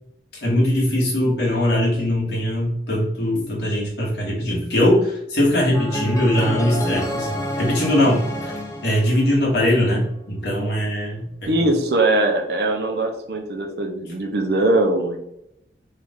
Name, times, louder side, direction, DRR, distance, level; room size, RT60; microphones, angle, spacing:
voice 1, 0.4-8.5 8.8-11.3, left 1 dB, 65° left, -4 dB, 1.3 m, -21 dB
sound 1, 5.7-9.8, equal, 20° left, 0.4 m, -28 dB
voice 2, 11.5-15.2, right 2 dB, 60° right, 3 dB, 0.5 m, -21 dB
3.2 x 2.4 x 3.4 m, 0.80 s
head